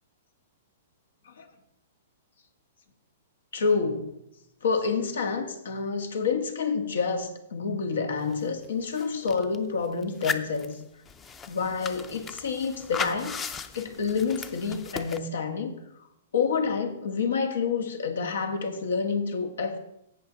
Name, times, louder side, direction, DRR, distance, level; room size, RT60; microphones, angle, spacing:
voice 1, 3.5-4.1 4.6-10.8 11.5-13.4 13.7-15.8 16.3-19.8, left 5 dB, 85° left, 7 dB, 1.6 m, -28 dB
sound 1, 8.3-8.4 8.6-9.6 10.0-15.2, left 5 dB, 15° left, 0.6 m, -36 dB
17.0 x 5.9 x 4.0 m, 0.80 s
hypercardioid pair, 145°, 0 cm